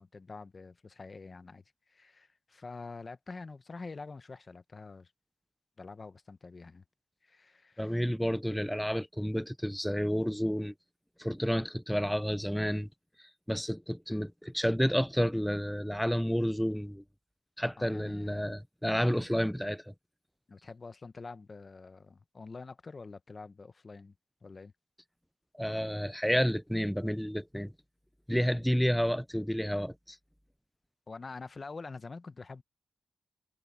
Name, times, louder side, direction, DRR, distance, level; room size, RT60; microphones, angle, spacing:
voice 1, 0.0-5.1 5.8-6.8 7.2-8.0 17.8-18.5 20.5-24.1 24.4-24.7 31.1-32.6, left 4 dB, 30° left, 0.8 m, -46 dB
voice 2, 7.8-10.7 11.2-12.9 13.5-17.0 17.6-19.9 25.6-27.7 28.3-30.2, equal, ahead, 0.4 m, -30 dB
wide cardioid pair, 170°, 0 cm